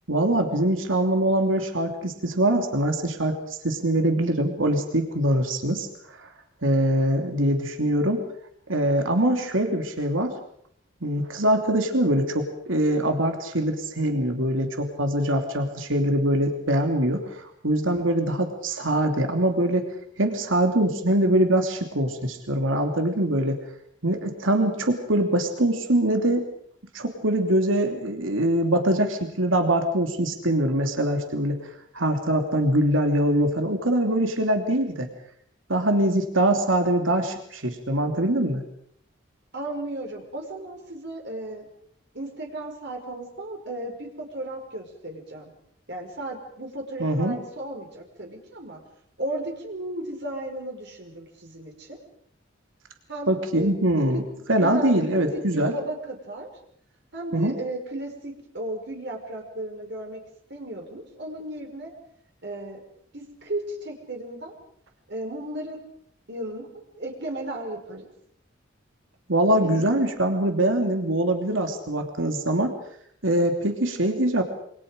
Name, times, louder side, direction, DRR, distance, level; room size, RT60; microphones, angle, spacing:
voice 1, 0.1-3.4 3.6-5.9 6.2-6.3 6.6-8.2 8.7-10.3 11.0-19.9 20.2-23.6 24.0-26.4 26.9-31.6 31.9-35.1 35.7-38.6 47.0-47.4 53.3-54.2 54.5-55.7 57.3-57.5 69.3-72.7 73.2-74.4, right 1 dB, 80° right, 4 dB, 3.0 m, -23 dB
voice 2, 39.5-41.7 42.1-45.5 45.9-48.8 49.2-52.0 53.1-53.3 53.5-53.7 54.6-55.2 55.5-56.5 57.1-60.2 60.5-61.9 62.4-62.8 63.1-64.6 65.1-65.8 66.3-66.7 67.0-68.1 69.6-69.9, right 1 dB, 60° right, 1 dB, 5.0 m, -35 dB
27.5 x 25.0 x 5.1 m, 0.67 s
head